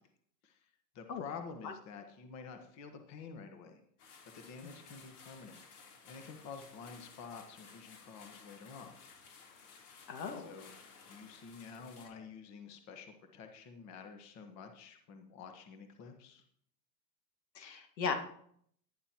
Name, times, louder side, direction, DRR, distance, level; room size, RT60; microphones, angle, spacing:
voice 1, 0.9-3.8 4.3-5.6 6.0-8.9 10.4-10.7 11.1-16.4, left 5 dB, 35° left, 6 dB, 1.4 m, -49 dB
sound 1, 4.0-12.1, left 5 dB, 65° left, 3.6 m, -57 dB
voice 2, 10.1-10.5 17.6-18.1, left 6 dB, 85° left, 5 dB, 2.1 m, -37 dB
11.0 x 11.0 x 3.0 m, 0.65 s
hypercardioid pair, 135°, 49 cm